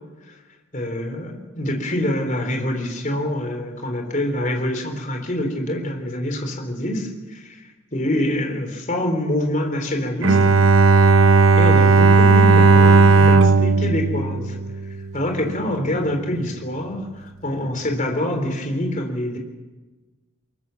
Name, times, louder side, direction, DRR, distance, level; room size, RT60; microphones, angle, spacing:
voice 1, 0.7-7.6 7.9-10.6 11.5-14.6 15.1-19.4, left 1 dB, 35° left, 3 dB, 3.8 m, -25 dB
Bowed string instrument, 10.2-15.2, right 3 dB, 70° right, 0.9 m, -14 dB
23.0 x 22.0 x 7.2 m, 1.3 s
head